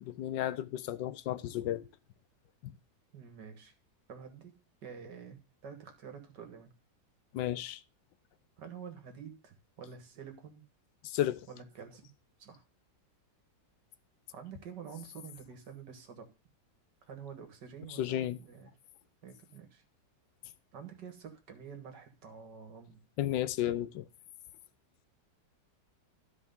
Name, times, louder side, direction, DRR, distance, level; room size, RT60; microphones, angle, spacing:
voice 1, 0.0-1.8 2.6-2.7 7.3-7.8 11.0-11.4 18.0-18.4 23.2-24.1, left 12 dB, 85° left, 1.4 m, -33 dB
voice 2, 3.1-3.7 4.1-4.6 4.8-6.7 8.6-10.6 11.5-12.0 12.4-12.6 14.3-16.3 17.0-18.7 19.2-19.8 20.7-23.0, right 7 dB, 70° right, 2.2 m, -48 dB
12.5 x 4.9 x 5.3 m
omnidirectional pair, 1.9 m